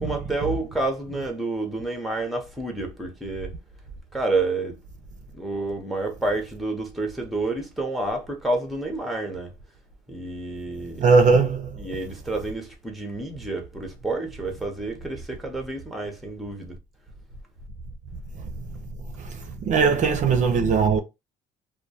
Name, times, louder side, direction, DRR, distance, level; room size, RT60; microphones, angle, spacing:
voice 1, 0.0-3.6 4.1-4.8 5.3-9.5 10.1-11.1 11.8-16.8 19.7-20.0, right 2 dB, ahead, 0.7 m, -29 dB
voice 2, 11.0-11.7 19.6-21.0, right 5 dB, 45° right, 0.5 m, -19 dB
2.2 x 2.2 x 2.7 m
cardioid pair, 110°, 17 cm